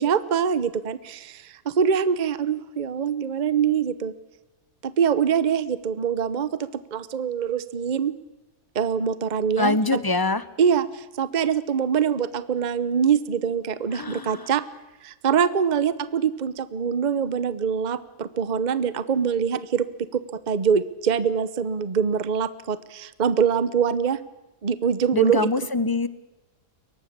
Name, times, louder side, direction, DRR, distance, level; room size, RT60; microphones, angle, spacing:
voice 1, 0.0-4.1 4.8-8.1 8.7-10.0 10.6-14.6 15.0-19.9 20.1-24.2 24.6-25.5, right 7 dB, 35° right, 16 dB, 0.9 m, -24 dB
voice 2, 9.6-10.4 13.9-14.5 25.1-26.1, left 3 dB, 20° left, 16 dB, 0.8 m, -24 dB
23.0 x 18.5 x 8.5 m, 1.1 s
omnidirectional pair, 1.4 m